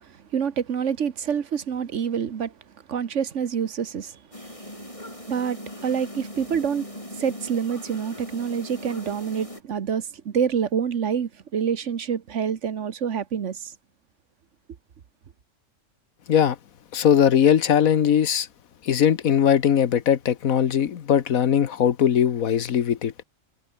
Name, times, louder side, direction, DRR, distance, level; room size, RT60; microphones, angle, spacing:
voice 1, 0.0-2.5 2.9-4.2 5.3-6.9 7.2-13.7, right 7 dB, 60° right, 1.4 m, -27 dB
sound 1, 4.3-9.6, left 1 dB, 25° left, 8.1 m, -39 dB
voice 2, 16.9-18.5 18.8-23.1, left 9 dB, 90° left, 1.5 m, -20 dB
omnidirectional pair, 1.4 m